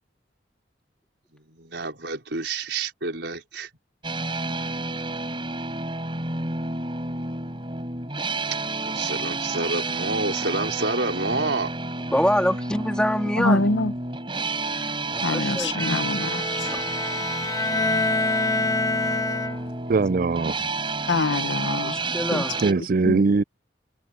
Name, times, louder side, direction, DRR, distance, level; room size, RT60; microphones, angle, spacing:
voice 1, 1.5-3.7 8.8-11.7, right 3 dB, 75° right, 4.4 m, -28 dB
sound 1, 4.0-22.7, right 3 dB, 25° right, 6.6 m, -30 dB
voice 2, 12.1-14.0 15.1-16.0 16.5-16.9 21.8-22.6, equal, 5° left, 3.5 m, -26 dB
voice 3, 13.4-13.9 15.2-16.4 21.1-21.9 22.3-22.4 23.0-23.2, left 2 dB, 90° left, 1.0 m, -24 dB
Bowed string instrument, 15.7-19.9, left 3 dB, 20° left, 4.6 m, -26 dB
voice 4, 19.9-20.5 22.6-23.4, right 4 dB, 50° right, 0.4 m, -21 dB
head